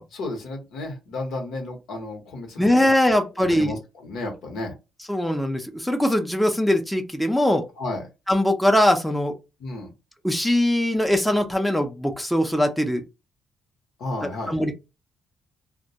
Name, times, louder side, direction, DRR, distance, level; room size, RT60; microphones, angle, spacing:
voice 1, 0.1-4.7 7.8-8.1 9.6-9.9 14.0-14.6, left 2 dB, 80° left, 0.9 m, -33 dB
voice 2, 2.6-3.8 5.1-7.6 8.3-9.3 10.2-13.0 14.2-14.7, left 1 dB, 5° left, 0.5 m, -21 dB
2.2 x 2.1 x 2.7 m
cardioid pair, 90°, 0 cm